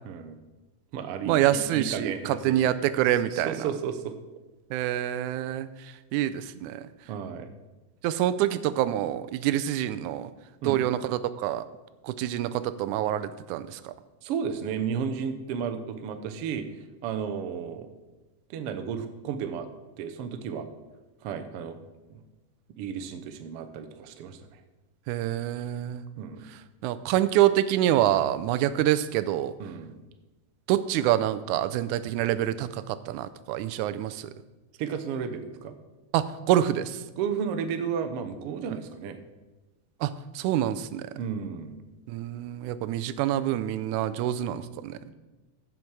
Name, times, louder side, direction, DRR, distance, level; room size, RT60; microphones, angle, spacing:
voice 1, 0.0-0.4 0.9-2.7 3.3-4.2 7.1-7.5 10.6-10.8 14.2-16.7 17.0-17.9 18.5-19.7 20.0-20.7 21.2-21.8 22.1-22.2 22.8-24.6 26.2-26.5 29.6-29.9 34.8-35.7 37.2-39.2 41.1-41.8 45.0-45.1, right 7 dB, 70° right, 8 dB, 1.5 m, -33 dB
voice 2, 1.3-3.6 4.7-5.7 6.1-6.8 8.0-10.3 10.6-11.6 12.0-13.9 25.1-26.1 26.8-29.5 30.7-34.3 36.1-37.0 40.0-41.1 42.1-45.0, right 12 dB, 90° right, 13 dB, 2.0 m, -26 dB
15.0 x 5.9 x 4.7 m, 1.1 s
omnidirectional pair, 3.4 m